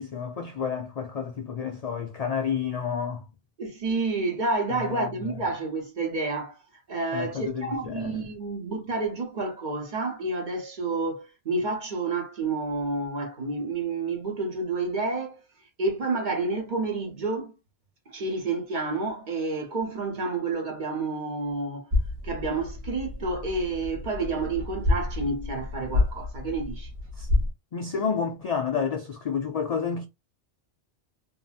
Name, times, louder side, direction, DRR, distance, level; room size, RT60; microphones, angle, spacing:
voice 1, 0.0-3.2 4.8-5.0 7.1-8.1 27.2-27.3 27.7-30.1, left 6 dB, 65° left, 0.4 m, -30 dB
voice 2, 3.6-6.6 6.9-15.4 15.8-17.5 18.1-21.9 22.2-26.9, right 3 dB, 45° right, 0.9 m, -29 dB
sound 1, 21.9-27.5, left 2 dB, 65° right, 1.2 m, -29 dB
2.9 x 2.5 x 2.4 m
omnidirectional pair, 1.2 m